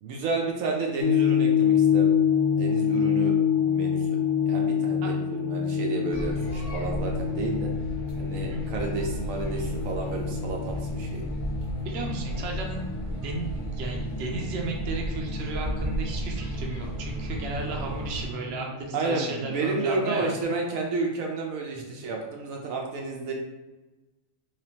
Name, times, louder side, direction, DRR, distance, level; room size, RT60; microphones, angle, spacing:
voice 1, 0.0-2.2 2.5-4.2 4.5-7.7 8.2-11.2 18.9-23.3, right 3 dB, 75° right, 0 dB, 1.0 m, -31 dB
sound 1, 1.0-20.4, left 7 dB, 70° left, 0.8 m, -28 dB
sound 2, 6.1-18.3, right 1 dB, 30° left, 0.9 m, -34 dB
voice 2, 11.8-12.9 13.2-20.3 21.7-22.0, right 3 dB, 60° right, 0 dB, 0.8 m, -34 dB
3.3 x 2.9 x 2.9 m, 1.1 s
omnidirectional pair, 1.5 m